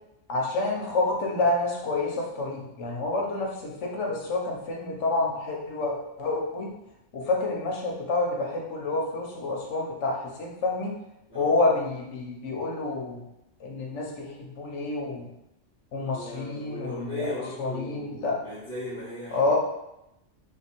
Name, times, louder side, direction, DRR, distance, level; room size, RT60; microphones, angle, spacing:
voice 1, 0.3-6.7 7.1-10.9 11.3-13.2 13.6-15.3 15.9-17.3 17.6-18.4 19.3-19.6, left 2 dB, 70° left, -1 dB, 1.1 m, -28 dB
voice 2, 16.0-19.6, left 1 dB, 10° left, -14 dB, 1.2 m, -37 dB
3.5 x 2.8 x 4.3 m, 0.88 s
omnidirectional pair, 1.3 m